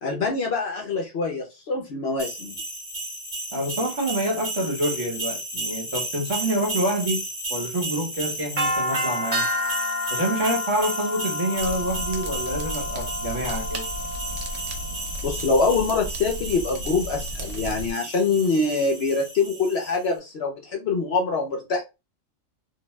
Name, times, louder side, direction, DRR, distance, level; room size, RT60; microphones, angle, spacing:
voice 1, 0.0-2.5 15.2-21.8, left 4 dB, 60° left, 0.8 m, -24 dB
sound 1, 2.2-19.9, equal, 35° right, 1.4 m, -31 dB
voice 2, 3.5-7.2 7.5-9.5 10.1-13.9, right 1 dB, 55° right, 1.2 m, -27 dB
sound 2, 11.5-17.9, right 1 dB, 70° right, 1.1 m, -35 dB
2.6 x 2.2 x 3.1 m
omnidirectional pair, 1.4 m